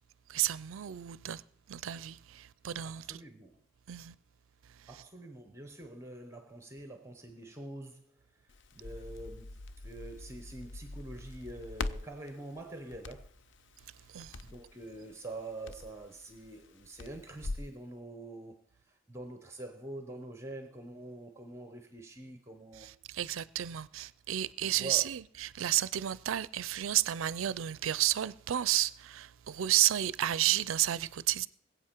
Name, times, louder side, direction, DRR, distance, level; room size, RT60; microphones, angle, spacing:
voice 1, 0.3-1.4 1.7-3.2 3.9-4.1 14.1-14.3 23.1-25.2 25.5-31.5, right 13 dB, 75° right, 0.4 m, -31 dB
voice 2, 2.8-3.6 4.9-13.3 14.4-22.9 24.6-25.2, right 2 dB, 15° right, 0.8 m, -46 dB
Crackle, 8.5-17.7, left 2 dB, 60° left, 0.6 m, -44 dB
21.0 x 7.9 x 4.5 m
head